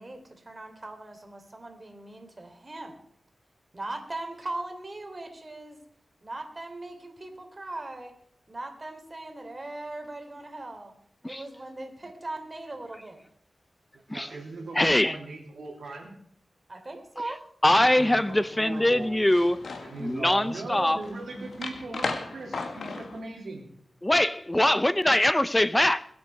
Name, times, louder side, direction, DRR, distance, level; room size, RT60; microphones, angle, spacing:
voice 1, 0.0-3.0 3.7-5.8 6.2-8.1 8.5-10.9 11.2-13.2 16.7-17.4, right 2 dB, 35° right, 3.3 m, -39 dB
voice 2, 13.9-16.1 17.7-19.1 19.8-23.7, right 2 dB, 85° right, 3.2 m, -39 dB
voice 3, 14.7-15.2 17.6-19.6 20.0-21.0 24.0-26.1, left 1 dB, 15° left, 0.6 m, -22 dB
sound 1, 17.9-23.2, left 4 dB, 85° left, 1.8 m, -38 dB
21.5 x 8.5 x 4.7 m
cardioid pair, 60°, 0 cm